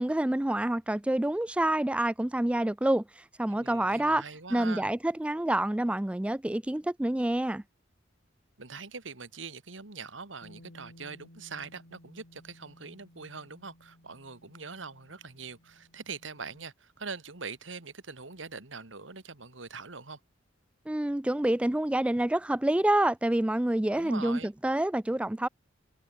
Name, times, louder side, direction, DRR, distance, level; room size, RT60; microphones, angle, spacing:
voice 1, 0.0-4.2 4.5-7.6 20.9-25.5, right 1 dB, 5° right, 0.3 m, -27 dB
voice 2, 3.5-4.9 8.6-20.2 23.9-24.5, right 4 dB, 90° right, 2.4 m, -43 dB
Bass guitar, 10.4-16.7, left 1 dB, 85° left, 4.5 m, -57 dB
head